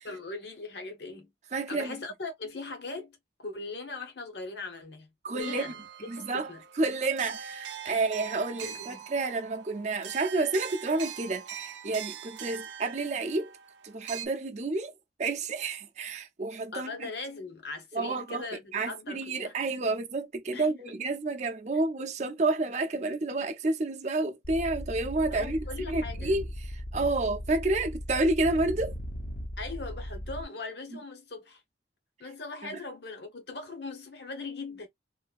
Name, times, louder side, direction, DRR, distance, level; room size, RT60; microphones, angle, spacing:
voice 1, 0.0-1.3 1.7-5.7 6.2-6.6 8.6-9.1 16.7-19.5 20.5-20.7 25.3-26.3 29.6-31.6 32.2-34.9, left 3 dB, 70° left, 1.1 m, -40 dB
voice 2, 1.5-1.9 5.2-5.7 6.1-6.5 6.8-13.5 13.8-14.9 15.2-17.1 17.9-18.5 18.7-29.0, right 2 dB, 40° right, 0.5 m, -30 dB
sound 1, 5.4-14.3, right 9 dB, 90° right, 0.5 m, -42 dB
sound 2, 24.4-30.4, equal, 45° left, 0.6 m, -38 dB
3.2 x 2.6 x 2.4 m
head